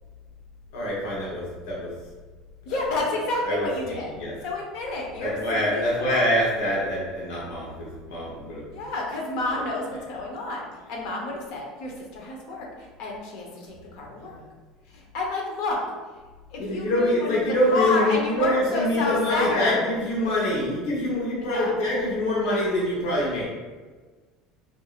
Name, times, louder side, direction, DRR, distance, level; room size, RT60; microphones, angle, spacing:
voice 1, 0.7-1.9 3.5-4.4 5.2-8.6 16.6-23.4, left 1 dB, 80° left, -6 dB, 0.9 m, -25 dB
voice 2, 2.7-4.1 4.4-6.3 8.7-14.4 14.9-15.8 16.5-17.4 17.7-19.9 21.3-21.8, left 2 dB, 55° left, -1 dB, 0.8 m, -30 dB
4.6 x 2.6 x 2.4 m, 1.4 s
cardioid pair, 175°, 0 cm